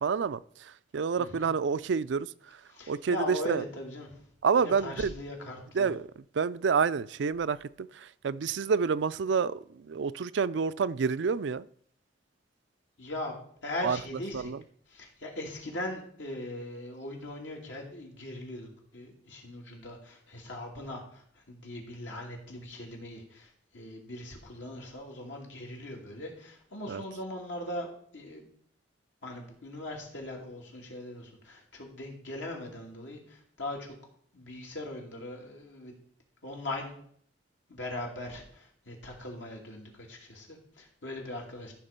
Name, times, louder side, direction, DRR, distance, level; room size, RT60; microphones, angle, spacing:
voice 1, 0.0-2.3 2.9-3.6 4.4-5.1 5.7-11.7 13.8-14.0 14.3-14.6 26.9-27.0, right 5 dB, 75° right, 15 dB, 0.4 m, -29 dB
voice 2, 1.2-1.5 2.7-4.1 4.6-5.9 13.0-13.3 13.6-14.5 14.9-27.9 28.1-28.4 29.2-33.9 34.3-36.0 36.4-36.9 37.7-41.7, left 1 dB, 85° left, 0 dB, 2.9 m, -40 dB
14.0 x 6.1 x 5.2 m, 0.62 s
head